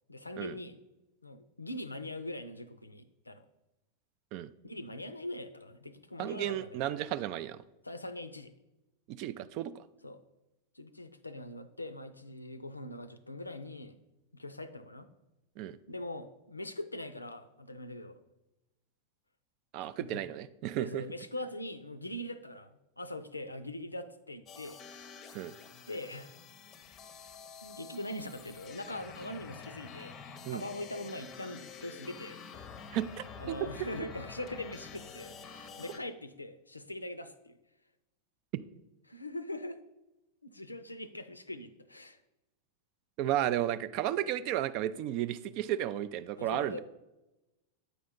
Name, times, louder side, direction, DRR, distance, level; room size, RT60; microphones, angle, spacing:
voice 1, 0.1-0.8 1.2-3.5 4.6-7.0 7.8-8.5 10.0-10.2 10.7-13.9 14.3-15.1 15.9-18.2 19.8-20.1 20.8-24.8 25.8-26.3 27.6-30.1 30.5-32.4 33.4-37.6 39.1-39.8 40.4-42.2 46.4-46.8, left 1 dB, 85° left, 11 dB, 0.5 m, -42 dB
voice 2, 6.2-7.6 9.1-9.8 15.6-15.8 19.7-21.0 25.3-25.5 30.4-30.6 32.9-33.6 43.2-46.8, right 12 dB, 45° right, 15 dB, 0.3 m, -33 dB
sound 1, 24.5-36.0, left 6 dB, 30° left, 0.6 m, -48 dB
8.1 x 5.0 x 3.8 m, 0.99 s
figure-of-eight pair, 90°, 0 cm